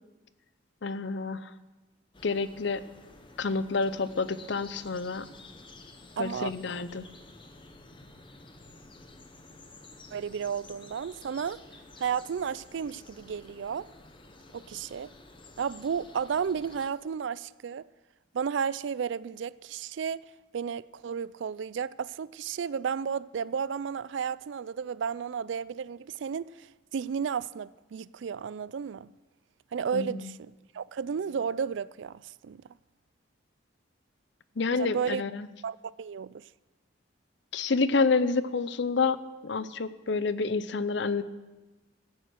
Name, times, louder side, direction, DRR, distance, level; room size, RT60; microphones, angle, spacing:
voice 1, 0.8-1.5 2.2-2.8 3.4-5.3 6.2-7.1 29.9-30.3 34.6-35.5 37.5-39.2 39.4-41.2, left 4 dB, 60° left, 0.6 m, -28 dB
sound 1, 2.1-16.9, left 2 dB, 25° left, 0.9 m, -51 dB
voice 2, 6.2-6.5 10.1-11.6 12.0-13.9 14.5-15.1 15.6-17.9 18.3-20.2 20.5-26.7 26.9-29.1 29.7-32.6 34.7-35.2 35.6-36.4, right 7 dB, 65° right, 0.3 m, -33 dB
14.0 x 9.2 x 6.3 m
head